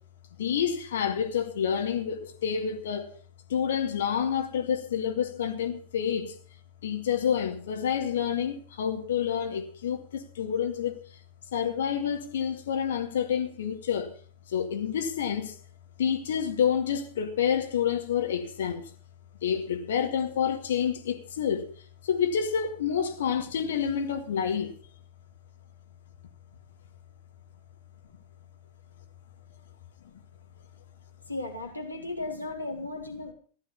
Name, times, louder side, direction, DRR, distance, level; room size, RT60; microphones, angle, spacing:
voice 1, 0.4-3.1 3.5-6.4 6.8-11.0 11.5-14.2 14.5-15.6 16.0-18.9 19.4-21.7 22.0-24.8, left 8 dB, 60° left, 2.1 m, -28 dB
voice 2, 31.3-33.3, left 2 dB, 85° left, 3.6 m, -35 dB
15.5 x 11.5 x 5.7 m
figure-of-eight pair, 90°, 0 cm